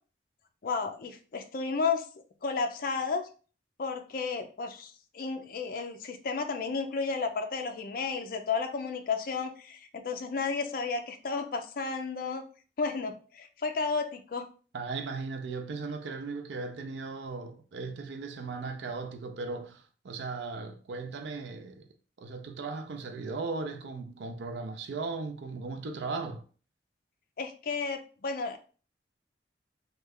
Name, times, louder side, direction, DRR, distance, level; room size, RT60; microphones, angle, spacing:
voice 1, 0.6-2.1 2.4-3.2 3.8-12.4 12.8-14.5 27.4-28.6, left 4 dB, 50° left, 0.4 m, -32 dB
voice 2, 14.7-21.9 22.2-26.4, right 4 dB, 75° right, 0.4 m, -37 dB
3.1 x 2.3 x 3.5 m
head